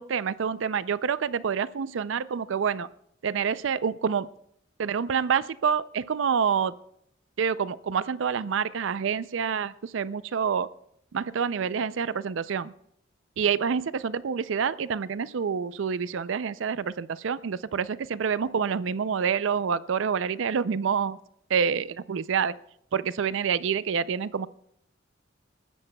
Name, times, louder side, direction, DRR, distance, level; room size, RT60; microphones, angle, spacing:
voice 1, 0.0-2.9 3.2-4.3 4.8-6.7 7.4-10.7 11.1-12.7 13.4-21.2 21.5-22.5 22.9-24.5, right 6 dB, 70° right, 17 dB, 0.4 m, -27 dB
27.5 x 13.5 x 2.3 m, 0.73 s
head